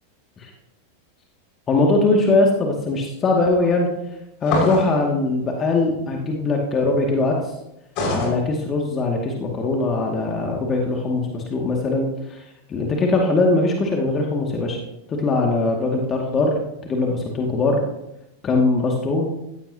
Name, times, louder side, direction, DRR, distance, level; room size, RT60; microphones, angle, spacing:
voice 1, 1.7-3.9 4.4-7.4 8.1-14.8 15.1-16.6 16.8-17.8 18.4-19.3, left 3 dB, 25° left, 0 dB, 2.3 m, -21 dB
sound 1, 4.4-5.0 8.0-8.3, left 2 dB, 40° left, 5.7 m, -22 dB
17.0 x 15.5 x 2.9 m, 0.87 s
figure-of-eight pair, 90°, 0 cm